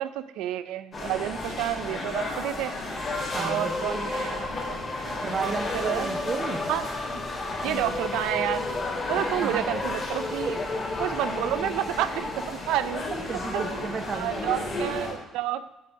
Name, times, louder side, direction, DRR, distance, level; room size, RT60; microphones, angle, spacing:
voice 1, 0.0-2.8 3.3-6.1 6.7-6.9 7.6-8.7 9.1-10.6 11.0-13.1 13.3-13.6 14.1-15.7, right 12 dB, 85° right, 13 dB, 0.4 m, -30 dB
sound 1, 0.9-15.1, left 2 dB, 40° left, 2.7 m, -33 dB
sound 2, 2.9-12.5, left 3 dB, 20° left, 0.7 m, -34 dB
voice 2, 3.3-4.0 5.2-6.6 9.4-9.6 13.3-14.7, right 5 dB, 40° right, 9 dB, 0.9 m, -33 dB
7.3 x 5.7 x 6.4 m, 0.94 s
cardioid pair, 90°, 0 cm